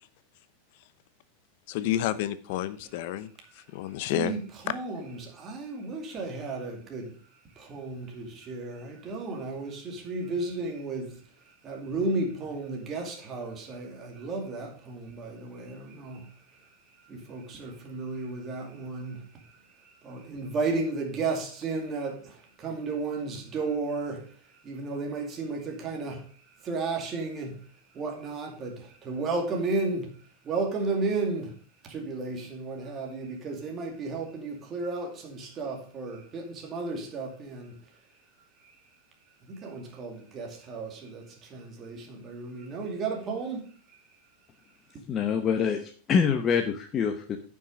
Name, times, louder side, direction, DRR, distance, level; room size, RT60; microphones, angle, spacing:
voice 1, 1.7-3.3 3.5-4.4, left 12 dB, 60° left, 0.8 m, -30 dB
voice 2, 4.1-7.2 7.5-16.7 17.0-27.7 27.9-30.2 30.4-37.8 38.6-38.7 39.4-44.0, right 3 dB, 25° right, 2.4 m, -34 dB
voice 3, 45.1-47.4, left 6 dB, 25° left, 0.9 m, -25 dB
9.4 x 6.1 x 5.2 m
supercardioid pair, 150°, 0 cm